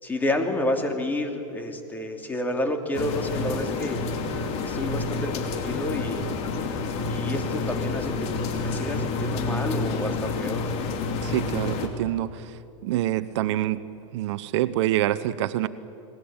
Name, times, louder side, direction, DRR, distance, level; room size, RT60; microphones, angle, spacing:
voice 1, 0.0-4.0 4.6-6.3 7.1-8.3 8.6-10.7, left 1 dB, 10° left, 4 dB, 2.9 m, -29 dB
sound 1, 2.9-11.9, left 4 dB, 40° left, 2.9 m, -29 dB
voice 2, 11.2-12.4 12.8-13.8 14.1-15.7, right 14 dB, 65° right, 15 dB, 0.8 m, -26 dB
29.5 x 20.5 x 8.9 m, 2.9 s
supercardioid pair, 130°, 16 cm